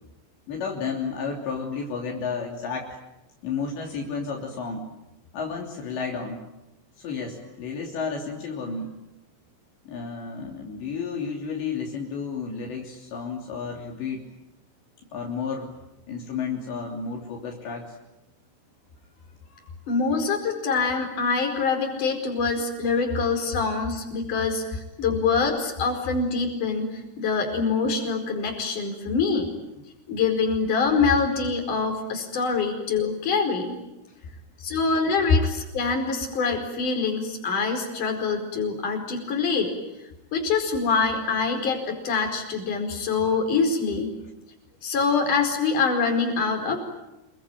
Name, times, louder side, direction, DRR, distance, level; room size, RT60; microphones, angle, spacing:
voice 1, 0.5-2.9 3.4-4.8 5.3-6.4 7.0-8.9 9.9-14.2 15.1-15.7 16.1-17.9 19.5-19.7, left 5 dB, 70° left, -1 dB, 5.4 m, -32 dB
voice 2, 19.9-29.5 30.1-33.8 34.6-39.7 40.3-44.1 44.8-46.8, left 4 dB, 45° left, 3 dB, 6.1 m, -25 dB
28.5 x 22.5 x 9.2 m, 0.95 s
omnidirectional pair, 5.4 m